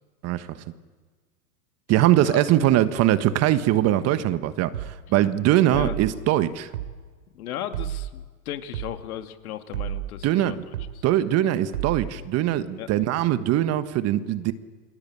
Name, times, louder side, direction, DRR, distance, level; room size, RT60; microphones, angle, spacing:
voice 1, 0.2-0.6 1.9-6.7 10.2-10.5 11.0-14.5, right 13 dB, 30° right, 12 dB, 1.4 m, -22 dB
sound 1, 4.7-5.0 5.7-6.1 6.7-7.0 7.7-8.1 8.7-9.0 9.7-10.1 10.7-11.0 11.7-12.1, right 13 dB, 65° right, 3.3 m, -31 dB
voice 2, 7.3-10.6 10.9-11.0 12.8-12.9, left 11 dB, 65° left, 8 dB, 2.3 m, -35 dB
29.0 x 21.5 x 8.8 m, 1.5 s
hypercardioid pair, 120°, 47 cm